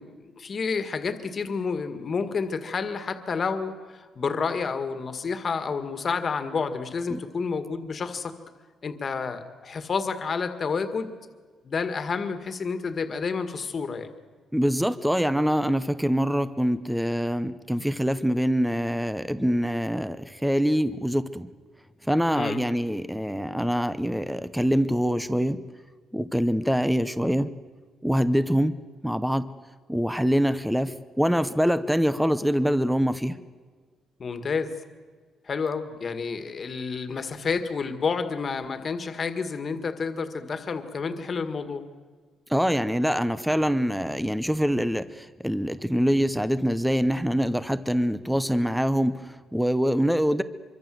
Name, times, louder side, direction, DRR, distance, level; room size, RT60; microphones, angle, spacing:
voice 1, 0.0-8.3 8.8-11.1 11.6-14.1 22.3-22.6 34.2-34.7 35.5-41.8, left 5 dB, 30° left, 9 dB, 1.8 m, -30 dB
voice 2, 14.5-21.5 22.1-25.6 26.1-27.5 28.0-28.8 29.0-29.5 29.9-33.4 42.5-50.4, equal, ahead, 13 dB, 0.7 m, -24 dB
25.5 x 24.0 x 7.7 m, 1.5 s
cardioid pair, 175°, 0 cm